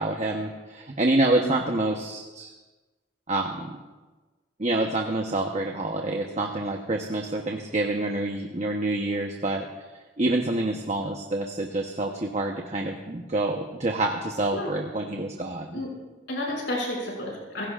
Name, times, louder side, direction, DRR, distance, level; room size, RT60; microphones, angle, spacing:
voice 1, 0.0-2.5 3.3-3.8 4.6-9.7 10.2-15.8, right 2 dB, 40° right, 2 dB, 1.1 m, -27 dB
voice 2, 16.3-17.7, left 1 dB, 80° left, -3 dB, 6.3 m, -31 dB
26.0 x 16.5 x 2.5 m, 1.2 s
head